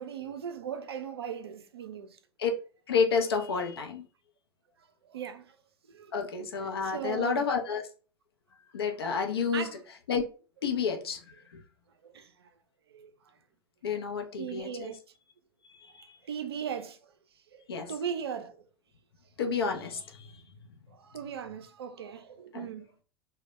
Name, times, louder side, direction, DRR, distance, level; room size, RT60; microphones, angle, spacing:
voice 1, 0.0-2.2 5.0-5.4 5.9-6.2 6.8-7.5 9.5-9.8 12.1-12.3 12.9-13.1 14.4-15.0 16.2-17.0 17.5-17.6 17.9-18.6 20.9-22.9, right 8 dB, 85° right, 0.4 m, -38 dB
voice 2, 2.9-4.0 6.1-7.9 8.7-9.7 10.1-10.2 10.6-11.2 11.5-11.6 13.8-14.9 15.8-16.1 17.7-17.9 19.4-20.4 22.5-22.7, left 6 dB, 80° left, 0.5 m, -30 dB
2.1 x 2.1 x 2.9 m
hypercardioid pair, 95°, 13 cm